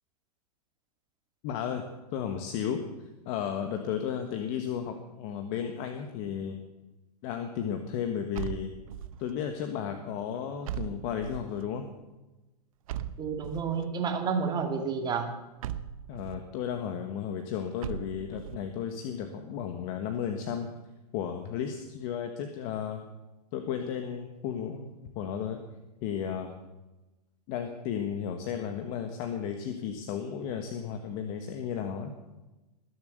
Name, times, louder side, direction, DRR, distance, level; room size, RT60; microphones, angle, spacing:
voice 1, 1.4-1.8 2.1-2.8 3.2-6.6 7.2-8.7 9.2-11.9 16.1-20.7 21.1-23.0 23.5-25.6 26.0-26.5 27.5-32.1, left 8 dB, 40° left, 6 dB, 1.5 m, -34 dB
sound 1, 8.3-9.3 10.6-11.6 12.9-13.8 15.6-16.5 17.8-18.7, right 11 dB, 60° right, 1.0 m, -38 dB
voice 2, 13.2-15.3, right 5 dB, 20° right, 4 dB, 2.3 m, -30 dB
21.0 x 7.4 x 6.7 m, 1.1 s
hypercardioid pair, 130°, 21 cm